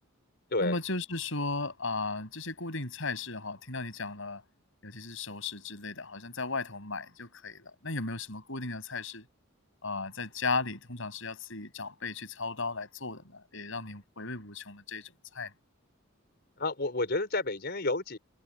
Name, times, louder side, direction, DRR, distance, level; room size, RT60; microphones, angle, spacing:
voice 1, 0.6-4.4 4.8-9.3 9.8-15.5, left 3 dB, 70° left, 6.4 m, -36 dB
voice 2, 16.6-18.2, left 2 dB, 55° left, 4.8 m, -30 dB
head